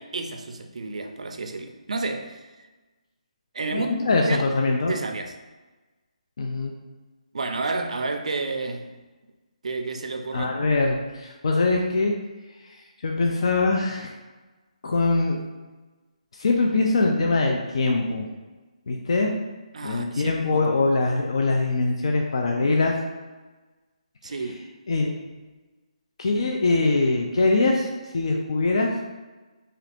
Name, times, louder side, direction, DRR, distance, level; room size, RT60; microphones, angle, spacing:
voice 1, 0.0-2.5 3.5-3.9 4.3-4.4 4.9-5.3 7.3-9.0 9.6-10.5 19.7-20.6 24.2-24.7, right 3 dB, 65° right, 0.4 m, -30 dB
voice 2, 3.7-4.9 6.4-6.7 10.3-12.1 13.0-14.1 14.8-15.4 16.4-18.3 18.9-19.3 19.8-22.9 24.9-25.1 26.2-27.9 28.1-28.9, left 3 dB, 50° left, 0.3 m, -22 dB
2.8 x 2.4 x 3.3 m
hypercardioid pair, 175°, 4 cm